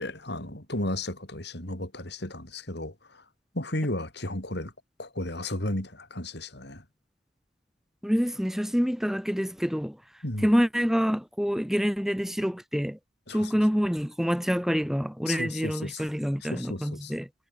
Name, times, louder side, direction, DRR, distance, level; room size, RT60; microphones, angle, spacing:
voice 1, 0.0-2.9 3.5-4.7 5.0-6.8 10.2-10.5 13.3-13.5 15.3-16.1 16.4-17.1, left 1 dB, 60° left, 5.1 m, -34 dB
voice 2, 8.0-10.0 10.4-13.0 13.3-17.3, equal, ahead, 1.6 m, -26 dB
head